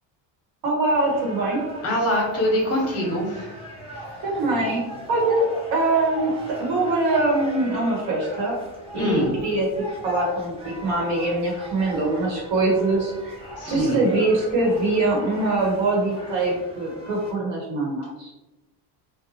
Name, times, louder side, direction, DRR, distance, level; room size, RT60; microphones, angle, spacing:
voice 1, 0.6-1.6 4.2-8.6 8.9-9.7 10.0-13.4 13.7-18.3, right 2 dB, 80° right, -2 dB, 1.1 m, -23 dB
sound 1, 0.8-17.3, right 1 dB, 15° right, 0.7 m, -39 dB
voice 2, 1.8-3.6 8.9-9.3 13.6-14.0, equal, 35° left, -1 dB, 0.8 m, -23 dB
2.8 x 2.2 x 2.7 m, 1.0 s
cardioid pair, 140°, 45 cm